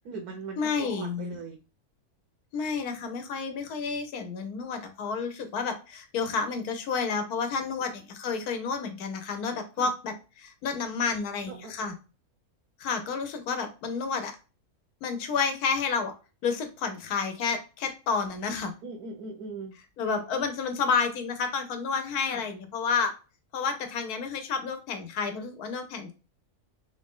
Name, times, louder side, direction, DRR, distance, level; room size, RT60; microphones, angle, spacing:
voice 1, 0.0-1.6 7.5-7.7 9.8-9.9 11.5-11.8 18.8-19.8 22.3-22.4, right 4 dB, 90° right, 3 dB, 1.2 m, -40 dB
voice 2, 0.6-1.4 2.5-11.9 12.8-14.3 15.0-16.1 16.4-18.7 20.0-23.1 23.5-26.1, left 5 dB, 85° left, 7 dB, 1.2 m, -30 dB
3.5 x 2.6 x 3.5 m, 0.32 s
omnidirectional pair, 1.6 m